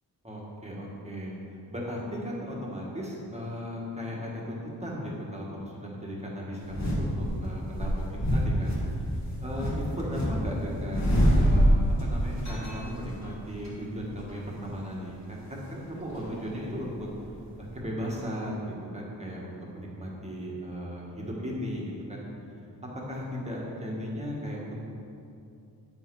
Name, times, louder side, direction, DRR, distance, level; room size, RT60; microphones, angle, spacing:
voice 1, 0.2-1.3 1.7-8.8 9.4-17.1 17.7-22.2 23.1-24.9, equal, 15° right, -4 dB, 1.4 m, -36 dB
sound 1, 6.7-7.3 7.8-10.3 10.6-12.1 12.4-13.7 14.0-14.3 16.0-17.3 17.6-17.7, equal, 45° left, 1.6 m, -25 dB
9.0 x 6.4 x 4.7 m, 2.6 s
wide cardioid pair, 175°, 40 cm